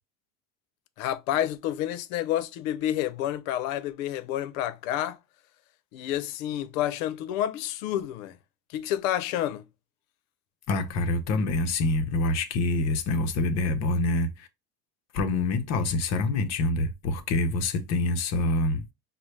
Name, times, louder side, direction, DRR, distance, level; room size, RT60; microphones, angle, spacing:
voice 1, 1.0-5.2 5.9-8.3 8.7-9.6, left 12 dB, 90° left, 0.7 m, -29 dB
voice 2, 10.7-14.5 15.1-18.8, left 2 dB, 40° left, 0.8 m, -26 dB
5.4 x 2.2 x 3.2 m
cardioid pair, 160°, 39 cm